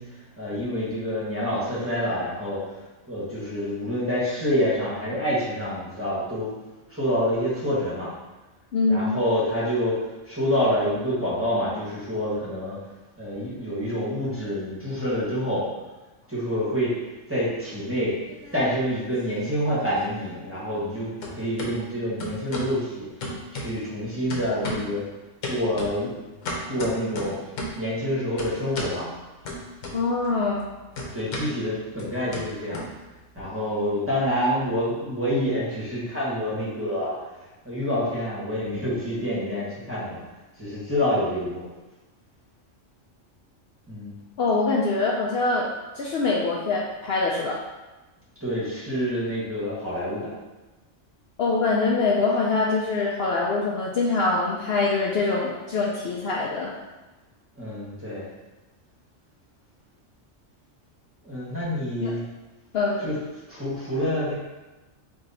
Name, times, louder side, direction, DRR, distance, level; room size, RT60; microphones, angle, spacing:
voice 1, 0.0-6.5 6.9-8.1 8.9-12.8 13.2-15.7 16.3-17.0 17.3-18.2 18.5-23.1 23.5-25.0 25.4-26.2 26.7-27.5 27.8-29.1 31.1-32.8 33.3-37.1 37.6-40.2 40.6-41.6 43.9-44.2 48.4-50.3 57.6-58.3 61.2-62.3 63.0-63.2 63.5-64.3, equal, 10° right, -9 dB, 1.1 m, -27 dB
voice 2, 8.7-9.1 29.9-30.6 44.4-45.7 46.0-47.6 51.4-56.7 62.0-62.1 62.7-63.0, left 3 dB, 65° left, -3 dB, 0.7 m, -24 dB
sound 1, 18.1-19.0 19.3-20.9 21.2-21.7 22.2-22.8 23.2-24.0 24.3-25.0 25.4-27.9 28.4-29.0 29.5-30.3 30.5-33.4, left 1 dB, 90° left, 1.2 m, -35 dB
3.9 x 2.7 x 4.0 m, 1.1 s
omnidirectional pair, 1.3 m